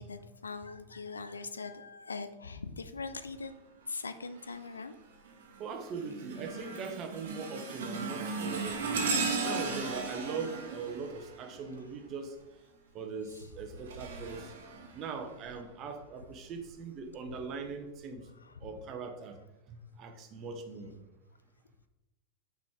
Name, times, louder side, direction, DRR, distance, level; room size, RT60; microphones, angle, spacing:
voice 1, 0.0-3.5 3.9-4.9 13.3-13.5 18.4-18.7, left 4 dB, 75° left, 11 dB, 0.4 m, -41 dB
sound 1, 4.4-4.8 5.3-12.1 13.3-15.5 16.2-16.3 17.2-17.3, right 4 dB, 60° right, 1.1 m, -37 dB
voice 2, 5.6-9.1 9.4-12.3 12.9-14.5 14.9-18.3 18.6-19.4 19.7-21.0, right 4 dB, 35° right, 6 dB, 0.9 m, -41 dB
6.0 x 5.0 x 3.7 m, 1.1 s
figure-of-eight pair, 90°, 0 cm